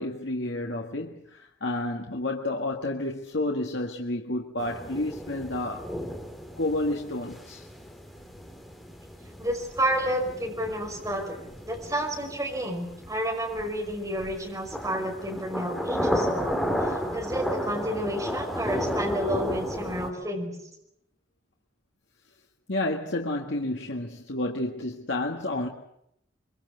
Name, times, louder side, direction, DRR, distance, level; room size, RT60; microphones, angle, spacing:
voice 1, 0.0-5.9 6.6-7.7 22.7-25.7, left 2 dB, 65° left, 1.8 m, -30 dB
sound 1, 4.6-20.1, equal, ahead, 3.3 m, -33 dB
voice 2, 9.4-16.6 17.1-20.5, right 1 dB, 20° right, 5.4 m, -30 dB
24.0 x 24.0 x 8.0 m
head